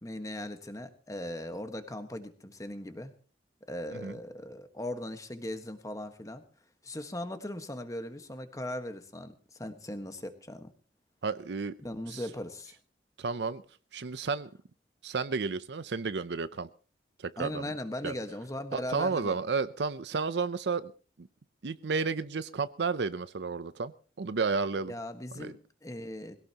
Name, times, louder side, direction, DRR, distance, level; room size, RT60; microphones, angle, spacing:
voice 1, 0.0-3.1 3.7-6.4 6.8-10.7 11.8-12.7 17.4-19.4 24.9-26.4, left 1 dB, 20° left, 8 dB, 1.4 m, -39 dB
voice 2, 11.2-11.7 12.1-12.2 13.2-13.6 13.9-14.5 15.0-16.7 17.2-17.7 18.0-18.1 18.7-20.9 21.2-21.3 21.6-23.9 24.2-24.9 25.3-25.5, right 4 dB, 75° right, 14 dB, 0.6 m, -32 dB
21.5 x 17.0 x 2.9 m, 0.39 s
head